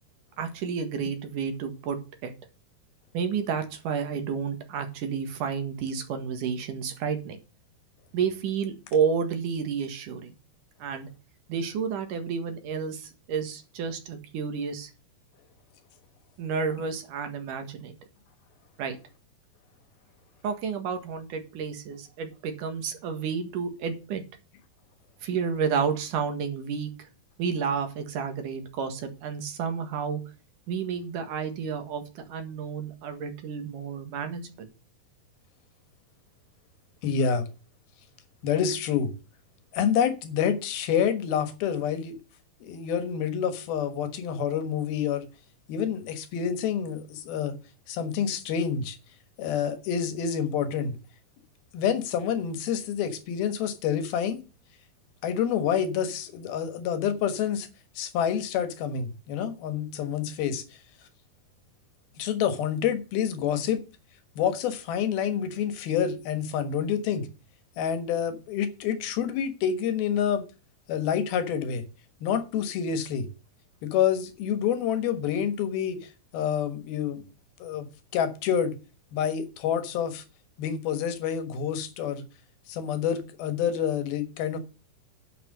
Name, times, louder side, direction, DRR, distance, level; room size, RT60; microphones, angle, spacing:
voice 1, 0.4-2.3 3.1-7.4 8.1-10.3 10.8-11.1 11.5-14.9 16.4-18.0 18.8-19.0 20.4-24.2 25.2-27.1 27.4-30.2 30.7-34.7, right 6 dB, 65° right, 3.1 m, -31 dB
voice 2, 37.0-37.5 38.4-39.1 39.7-42.2 42.6-45.3 45.7-47.6 47.9-49.0 49.4-51.0 51.7-54.4 55.2-57.7 58.0-60.6 62.2-63.8 64.4-67.3 67.8-70.4 70.9-71.8 72.2-73.3 73.8-77.3 77.6-77.9 78.1-78.7 79.1-80.2 80.6-82.2 82.7-84.6, left 8 dB, 85° left, 3.3 m, -28 dB
11.0 x 5.8 x 6.5 m
omnidirectional pair, 4.2 m